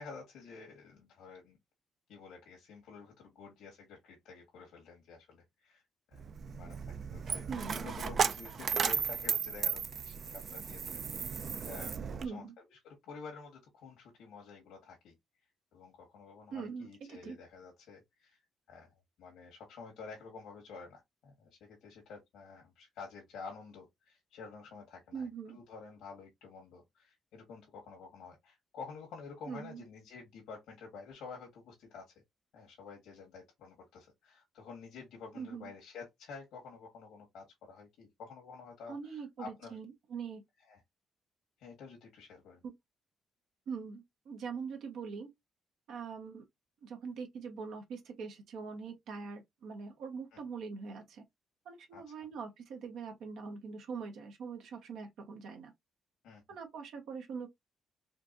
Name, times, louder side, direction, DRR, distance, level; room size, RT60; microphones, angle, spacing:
voice 1, 0.0-1.6 2.1-5.8 6.1-6.3 6.6-12.4 12.7-15.1 15.7-18.4 18.7-32.1 32.5-39.8 40.7-40.8 41.6-42.6 50.3-50.4 51.9-52.1 56.2-56.4, left 5 dB, 85° left, 1.5 m, -50 dB
Coin (dropping), 6.1-12.3, right 6 dB, 50° right, 0.4 m, -35 dB
voice 2, 7.5-7.9 12.2-12.5 16.5-17.4 25.1-25.6 29.5-29.8 35.3-35.7 38.9-40.4 42.6-42.7 43.7-45.3 45.9-46.4 46.8-51.2 51.6-55.7 56.5-57.5, right 5 dB, 80° right, 1.0 m, -43 dB
4.4 x 2.5 x 2.6 m
cardioid pair, 90°, 0 cm